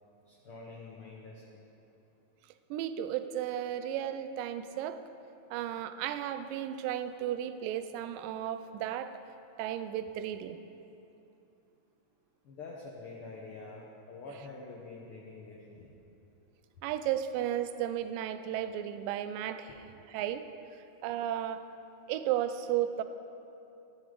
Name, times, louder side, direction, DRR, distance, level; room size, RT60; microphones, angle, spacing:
voice 1, 0.3-1.7 12.4-15.9 16.8-16.9 19.7-19.8, left 3 dB, 90° left, -2 dB, 1.2 m, -46 dB
voice 2, 2.7-5.0 5.5-9.1 9.6-10.6 16.8-20.4 21.0-21.6 22.1-23.0, right 11 dB, 85° right, 11 dB, 2.2 m, -34 dB
13.5 x 11.0 x 3.7 m, 2.8 s
omnidirectional pair, 3.8 m